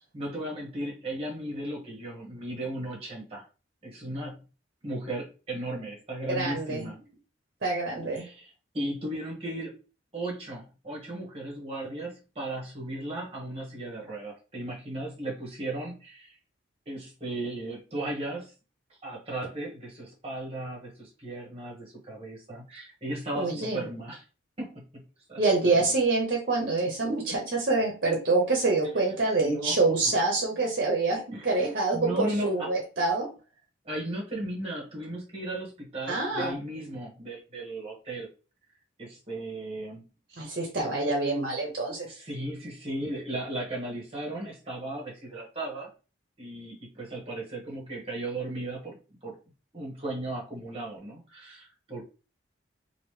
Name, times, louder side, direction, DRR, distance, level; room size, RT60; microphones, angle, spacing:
voice 1, 0.1-3.5 3.8-4.4 4.8-7.0 8.1-9.8 10.1-16.4 16.9-18.5 19.0-24.2 24.6-24.9 25.3-25.9 29.4-29.8 31.3-32.7 33.8-38.3 39.0-40.0 42.0-45.9 46.4-49.0 49.2-49.4 49.7-52.0, right 1 dB, 30° right, -3 dB, 1.1 m, -36 dB
voice 2, 6.3-6.9 7.6-8.3 23.3-23.8 25.4-33.3 36.1-36.5 40.4-42.1, right 3 dB, 50° right, 0 dB, 0.8 m, -26 dB
3.0 x 2.6 x 3.1 m, 0.35 s
head